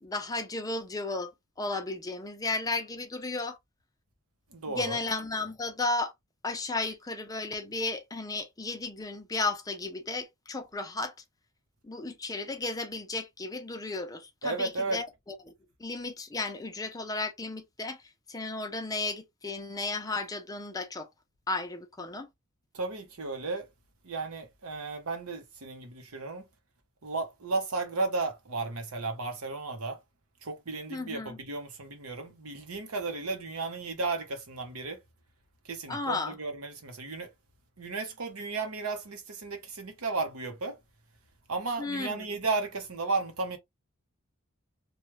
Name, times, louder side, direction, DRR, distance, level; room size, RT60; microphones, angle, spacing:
voice 1, 0.0-1.3 1.6-3.6 4.7-6.1 6.4-11.1 11.8-15.5 15.8-18.0 18.3-21.1 21.5-22.3 30.9-31.4 35.9-36.4 41.8-42.4, left 3 dB, 15° left, 0.6 m, -34 dB
voice 2, 4.5-5.0 14.4-15.0 22.7-23.7 24.0-26.4 27.0-30.0 30.4-35.0 35.7-37.3 37.8-40.8 41.5-43.6, right 3 dB, 90° right, 1.0 m, -34 dB
3.1 x 2.4 x 3.1 m
head